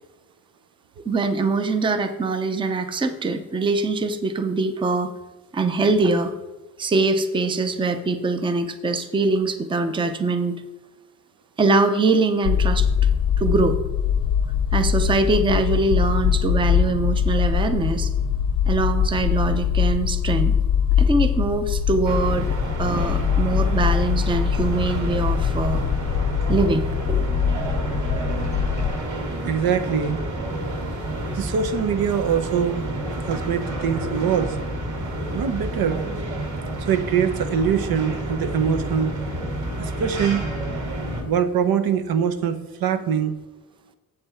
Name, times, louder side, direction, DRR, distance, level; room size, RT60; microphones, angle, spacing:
voice 1, 1.1-5.1 5.5-6.3 6.8-10.6 11.6-12.9 13.4-13.8 14.7-18.1 18.7-20.5 21.0-22.5 22.8-25.8 26.5-26.8 27.1-27.3, right 3 dB, 15° right, 8 dB, 0.5 m, -23 dB
sound 1, 12.4-29.0, left 8 dB, 65° left, 0.5 m, -22 dB
sound 2, 22.0-41.2, right 1 dB, 60° right, 2.2 m, -29 dB
voice 2, 29.4-30.2 31.3-32.9 33.3-34.6 35.3-36.0 36.9-39.2 39.8-40.5 41.3-43.3, right 7 dB, 85° right, 10 dB, 0.8 m, -23 dB
8.0 x 7.7 x 4.3 m, 1.2 s
wide cardioid pair, 175°, 35 cm